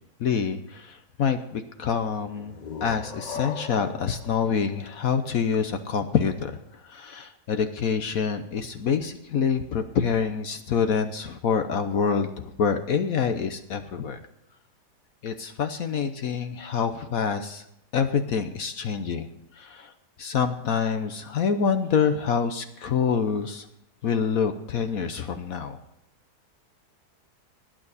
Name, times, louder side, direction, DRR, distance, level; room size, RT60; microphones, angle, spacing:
voice 1, 0.2-2.5 2.8-6.6 6.8-14.2 15.2-17.6 17.9-19.3 19.6-19.9 20.2-23.7 24.0-25.8, left 6 dB, 60° left, 8 dB, 1.2 m, -26 dB
sound 1, 2.3-5.9, left 5 dB, 45° left, 0.6 m, -39 dB
19.0 x 9.2 x 4.1 m, 0.80 s
omnidirectional pair, 1.8 m